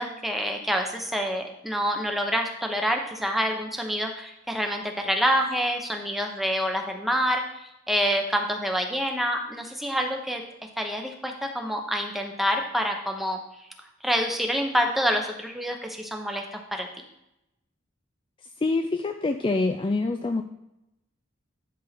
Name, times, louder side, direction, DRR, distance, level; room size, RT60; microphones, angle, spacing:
voice 1, 0.0-10.4 10.8-13.4 14.0-16.9, equal, ahead, 3 dB, 0.9 m, -27 dB
voice 2, 18.6-20.4, left 3 dB, 25° left, 5 dB, 0.3 m, -25 dB
10.5 x 3.7 x 5.9 m, 0.88 s
head